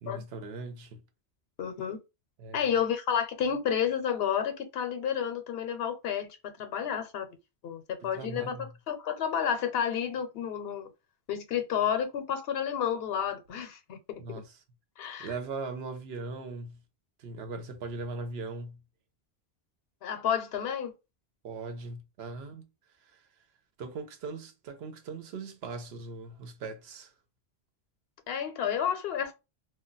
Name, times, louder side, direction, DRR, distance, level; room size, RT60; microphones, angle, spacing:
voice 1, 0.0-1.0 2.4-2.7 8.0-8.7 14.2-14.5 15.0-16.8 17.2-18.8 21.4-22.7 23.1-23.2 23.8-27.1, right 3 dB, 75° right, 0.9 m, -39 dB
voice 2, 1.6-2.0 2.5-7.3 7.6-10.9 11.3-14.4 15.0-15.3 20.0-20.9 28.3-29.3, left 8 dB, 70° left, 0.8 m, -31 dB
2.2 x 2.1 x 3.8 m
omnidirectional pair, 1.1 m